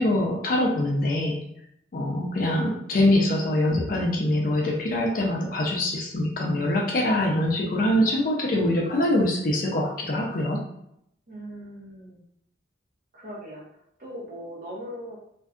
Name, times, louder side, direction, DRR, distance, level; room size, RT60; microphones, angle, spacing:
voice 1, 0.0-1.4 1.9-10.6, left 1 dB, 50° left, -1 dB, 0.4 m, -24 dB
sound 1, 3.7-7.7, left 1 dB, 35° left, 1.0 m, -43 dB
voice 2, 11.3-12.2 13.1-15.2, equal, 50° right, -5 dB, 0.9 m, -39 dB
2.5 x 2.2 x 2.4 m, 0.75 s
head